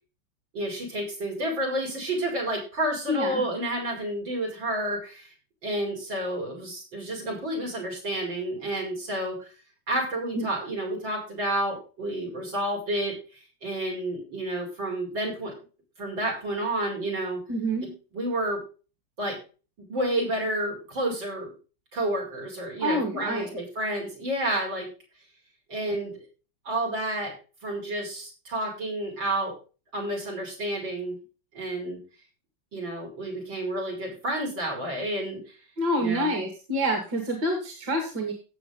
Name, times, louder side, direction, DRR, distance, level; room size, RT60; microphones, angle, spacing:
voice 1, 0.5-5.3 5.6-9.4 9.9-13.1 13.6-15.6 16.0-17.4 18.1-18.6 19.2-19.4 19.8-21.5 21.9-24.9 25.7-26.1 26.6-27.3 27.6-29.5 29.9-31.2 31.5-32.0 32.7-35.6 36.0-36.4, right 1 dB, 90° right, 2 dB, 6.4 m, -30 dB
voice 2, 3.1-3.4 10.3-10.5 17.5-17.9 22.8-23.5 35.8-38.3, equal, 65° right, 4 dB, 3.2 m, -27 dB
17.0 x 6.8 x 3.9 m, 0.35 s
omnidirectional pair, 2.0 m